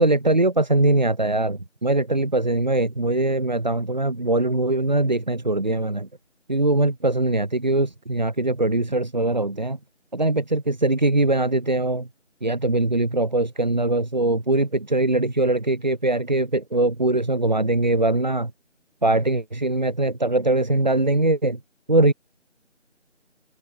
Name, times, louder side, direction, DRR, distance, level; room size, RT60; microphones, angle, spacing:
voice 1, 0.0-6.1 6.5-9.8 10.1-12.1 12.4-18.5 19.0-21.6 21.9-22.1, right 2 dB, 35° right, 2.3 m, -21 dB
figure-of-eight pair, 170°, 37 cm